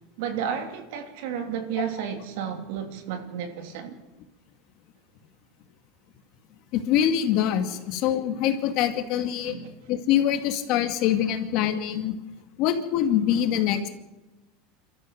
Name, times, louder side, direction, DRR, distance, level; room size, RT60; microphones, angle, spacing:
voice 1, 0.2-4.0 7.7-7.8 9.4-9.7, right 8 dB, 65° right, 3.0 m, -32 dB
voice 2, 6.7-9.6 9.9-12.1 12.6-13.9, left 10 dB, 50° left, 2.2 m, -24 dB
29.0 x 13.5 x 6.6 m
supercardioid pair, 160°, 0 cm